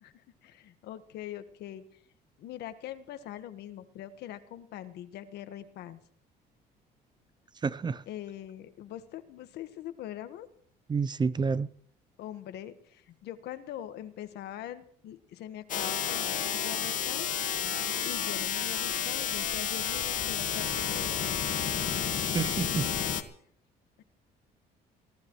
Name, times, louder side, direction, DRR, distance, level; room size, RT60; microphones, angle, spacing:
voice 1, 0.0-2.0 2.4-6.0 8.1-10.5 12.2-17.3 18.0-21.6, left 11 dB, 75° left, 1.5 m, -43 dB
voice 2, 7.6-8.0 10.9-11.7 22.2-22.9, right 5 dB, 25° right, 0.6 m, -29 dB
sound 1, 15.7-23.2, left 8 dB, 50° left, 1.7 m, -31 dB
24.5 x 17.5 x 3.1 m
cardioid pair, 110°, 17 cm